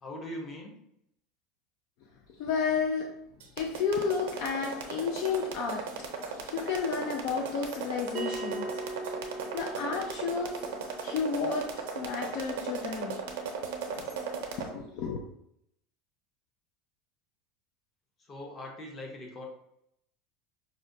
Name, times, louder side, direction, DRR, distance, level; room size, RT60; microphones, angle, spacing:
voice 1, 0.0-0.7 18.2-19.4, left 1 dB, 25° left, 0 dB, 0.7 m, -41 dB
voice 2, 2.4-3.1 3.6-5.9 6.3-8.7 9.5-10.6 11.0-11.7 11.9-13.2 13.9-14.1 14.6-15.2, left 5 dB, 50° left, 2 dB, 0.4 m, -31 dB
sound 1, 3.4-14.7, right 6 dB, 85° right, 0.7 m, -36 dB
Bell, 8.1-13.2, right 2 dB, 30° right, 0.3 m, -41 dB
4.9 x 2.1 x 2.6 m, 0.76 s
supercardioid pair, 170°, 0 cm